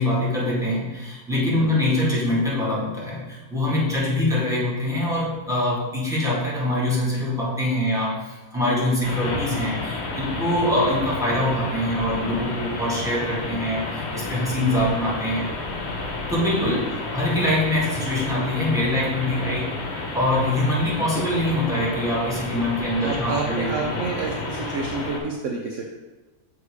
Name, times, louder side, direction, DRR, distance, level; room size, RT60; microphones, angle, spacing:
voice 1, 0.0-15.5 16.3-19.7 20.1-23.9, left 1 dB, ahead, -7 dB, 1.9 m, -24 dB
voice 2, 1.4-1.8 21.1-21.2 23.0-25.9, right 4 dB, 60° right, 0 dB, 1.0 m, -29 dB
sound 1, 9.0-25.2, left 2 dB, 50° left, 1.2 m, -31 dB
6.5 x 4.8 x 4.8 m, 1.2 s
omnidirectional pair, 1.6 m